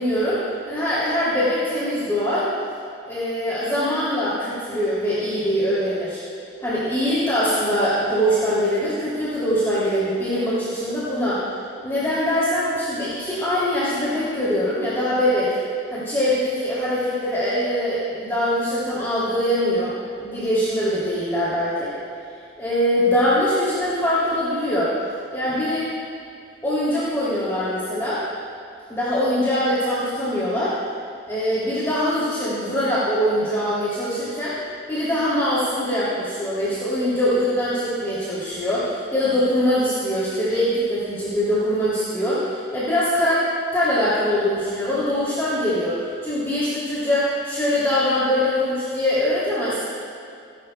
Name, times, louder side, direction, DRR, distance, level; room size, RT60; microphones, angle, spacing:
voice 1, 0.0-2.5 3.0-6.2 6.6-11.4 11.8-15.5 15.9-21.9 22.6-24.9 25.3-25.9 26.6-28.2 28.9-30.8 31.2-34.6 34.9-46.0 46.2-49.8, equal, 15° left, -11 dB, 2.7 m, -23 dB
27.0 x 11.0 x 2.2 m, 2.5 s
head